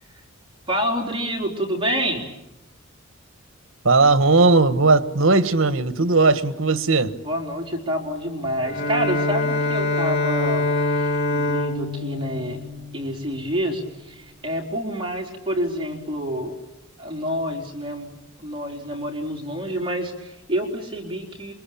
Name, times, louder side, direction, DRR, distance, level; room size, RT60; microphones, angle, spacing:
voice 1, 0.7-2.2 7.2-12.6 12.9-16.5 17.0-21.5, equal, 25° right, 4.3 m, -28 dB
voice 2, 3.8-7.1, right 3 dB, 65° right, 1.5 m, -17 dB
Bowed string instrument, 8.6-13.6, left 2 dB, 55° left, 2.6 m, -25 dB
28.0 x 24.5 x 8.7 m
head